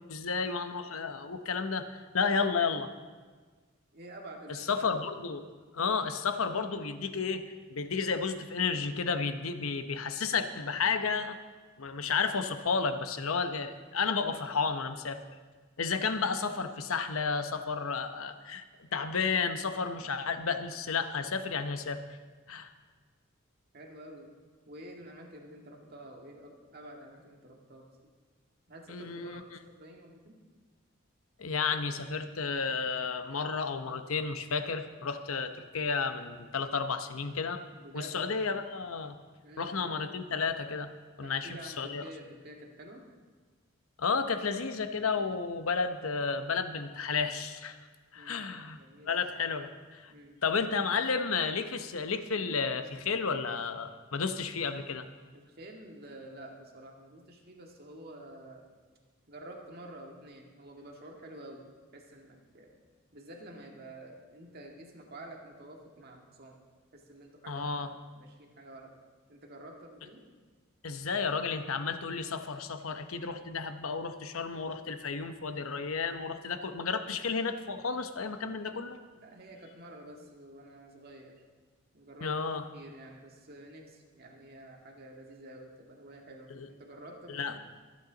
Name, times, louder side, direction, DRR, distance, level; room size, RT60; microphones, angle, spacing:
voice 1, 0.1-2.9 4.5-11.4 11.8-15.2 15.8-22.0 22.5-22.7 28.9-29.4 31.4-37.6 37.9-39.2 39.6-40.9 41.2-42.0 44.0-47.8 48.1-48.8 49.1-50.1 50.4-55.1 67.5-67.9 70.8-79.0 82.2-82.6 86.5-86.7 87.3-87.6, left 5 dB, 90° left, 9 dB, 0.9 m, -32 dB
voice 2, 3.9-4.8 5.8-5.9 23.7-24.3 24.7-27.9 28.7-30.4 37.8-38.1 39.4-39.9 41.2-43.1 48.1-48.5 48.8-49.2 50.1-50.4 55.3-58.7 59.3-61.7 61.9-62.8 63.1-66.6 66.9-67.9 68.1-69.0 69.3-70.2 79.1-81.4 81.9-82.3 82.7-87.6, right 1 dB, 50° right, 0 dB, 1.9 m, -49 dB
24.0 x 8.6 x 3.9 m, 1.4 s
head